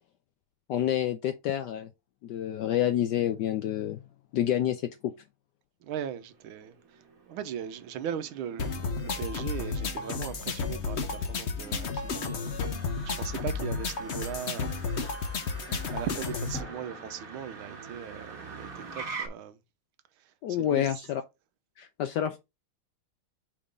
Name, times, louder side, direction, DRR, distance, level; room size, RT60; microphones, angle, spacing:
voice 1, 0.7-1.9 2.2-4.0 4.3-5.1 20.4-21.2 21.8-22.4, left 11 dB, 75° left, 1.0 m, -28 dB
voice 2, 5.8-12.6 13.2-14.9 15.9-19.6 20.5-20.9, right 9 dB, 80° right, 1.5 m, -38 dB
Motor vehicle (road), 6.2-19.3, right 5 dB, 45° right, 1.6 m, -46 dB
sound 1, 8.6-16.6, left 4 dB, 60° left, 0.7 m, -32 dB
Drum, 16.5-18.3, left 2 dB, ahead, 1.1 m, -46 dB
5.0 x 3.7 x 5.2 m
omnidirectional pair, 2.3 m